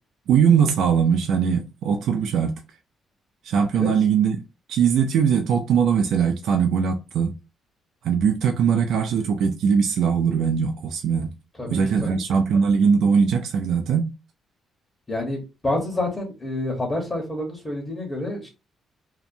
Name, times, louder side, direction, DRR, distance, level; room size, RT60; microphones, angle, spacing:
voice 1, 0.3-2.6 3.4-4.4 4.7-7.3 8.0-11.3 11.7-14.1, right 6 dB, 75° right, 0.3 m, -20 dB
voice 2, 11.6-12.4 15.1-18.5, left 2 dB, 25° left, 1.1 m, -28 dB
2.7 x 2.1 x 2.6 m
cardioid pair, 90°, 0 cm